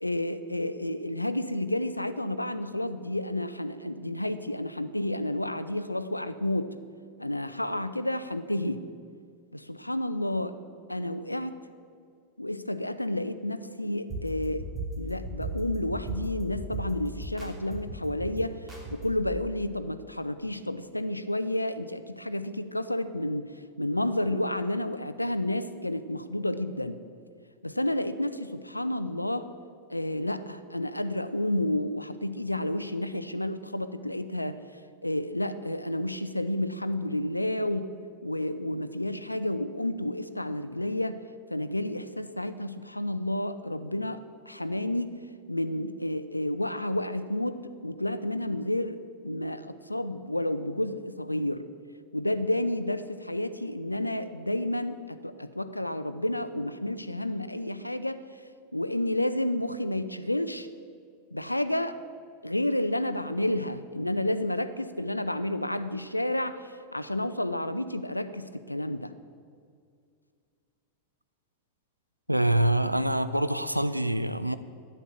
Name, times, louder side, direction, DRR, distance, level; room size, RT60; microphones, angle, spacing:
voice 1, 0.0-6.8 7.2-8.9 9.5-10.6 10.9-11.6 12.4-14.6 15.0-27.0 27.6-29.5 29.9-34.6 35.0-37.9 38.2-41.2 41.5-45.2 45.5-51.7 52.1-58.2 58.7-60.7 61.3-62.0 62.4-69.1, left 1 dB, 85° left, 12 dB, 0.6 m, -30 dB
sound 1, 14.1-19.3, right 1 dB, 15° right, 2.9 m, -37 dB
voice 2, 72.3-74.5, right 1 dB, 90° right, 12 dB, 0.5 m, -25 dB
12.0 x 9.5 x 7.1 m, 2.2 s
figure-of-eight pair, 90°, 0 cm